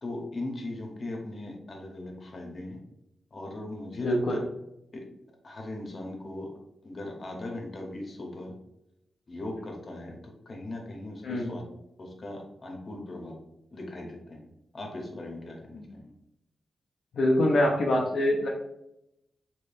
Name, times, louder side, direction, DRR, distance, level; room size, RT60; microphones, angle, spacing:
voice 1, 0.0-2.8 3.3-4.4 4.9-5.0 5.4-6.5 6.8-8.5 9.3-11.6 12.0-13.4 13.7-16.1, left 2 dB, 45° left, 1 dB, 0.9 m, -39 dB
voice 2, 4.0-4.4 11.2-11.5 17.1-18.5, left 1 dB, 75° left, -2 dB, 0.5 m, -24 dB
3.3 x 3.0 x 2.6 m, 0.84 s
cardioid pair, 80°, 0 cm